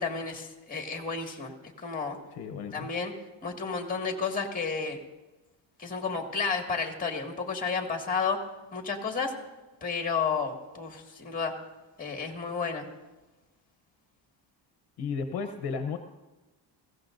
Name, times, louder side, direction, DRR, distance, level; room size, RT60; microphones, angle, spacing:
voice 1, 0.0-2.2 2.7-3.1 3.4-5.0 5.8-8.4 8.7-9.3 9.8-11.5 12.0-12.9, left 5 dB, 15° left, 2 dB, 2.0 m, -31 dB
voice 2, 2.3-2.9 15.0-16.0, left 5 dB, 55° left, 7 dB, 0.9 m, -33 dB
21.5 x 16.0 x 2.6 m, 1.1 s
cardioid pair, 130°, 48 cm